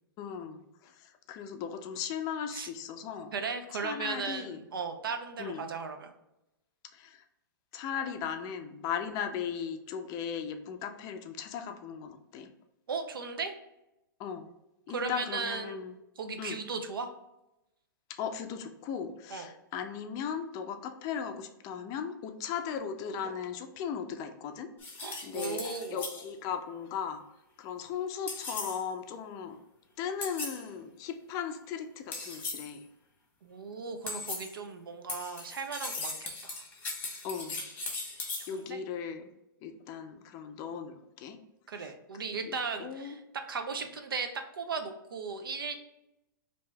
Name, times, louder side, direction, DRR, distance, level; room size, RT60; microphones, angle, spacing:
voice 1, 0.2-3.3 3.7-4.6 5.4-5.7 6.9-7.2 7.7-12.5 14.2-14.5 14.9-15.9 16.4-16.6 18.2-24.7 25.2-27.2 27.6-29.6 30.0-32.8 37.2-37.6 38.5-39.3 39.6-41.4 42.4-43.2, left 7 dB, 30° left, 7 dB, 0.4 m, -37 dB
voice 2, 3.3-6.1 12.9-13.6 14.9-15.8 16.2-17.1 19.3-19.5 25.0-26.0 33.4-36.6 38.5-38.8 41.7-43.2 43.5-45.8, right 5 dB, 85° right, 6 dB, 0.5 m, -36 dB
sound 1, 24.8-26.3 28.3-28.9 30.2-30.6 32.1-32.7 34.1-34.6 35.1-38.5, left 3 dB, 15° left, 1.0 m, -38 dB
3.1 x 2.7 x 3.3 m, 0.91 s
hypercardioid pair, 125°, 11 cm